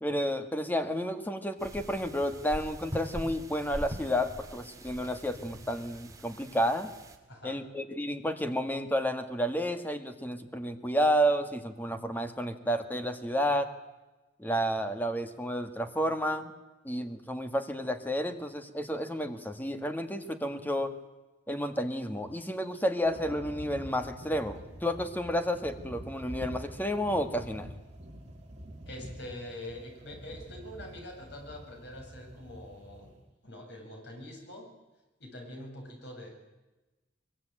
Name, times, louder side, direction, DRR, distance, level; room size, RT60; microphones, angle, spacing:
voice 1, 0.0-6.9 7.4-13.7 14.4-16.5 16.8-20.9 21.5-27.7, equal, 10° left, 8 dB, 1.9 m, -31 dB
sound 1, 1.6-7.2, equal, 20° right, 2.8 m, -43 dB
voice 2, 7.3-7.7 28.9-33.2 33.4-34.7 35.2-36.3, left 1 dB, 65° left, 2 dB, 7.8 m, -44 dB
sound 2, 23.0-33.2, equal, 35° right, 5.1 m, -46 dB
23.0 x 23.0 x 9.1 m, 1.1 s
head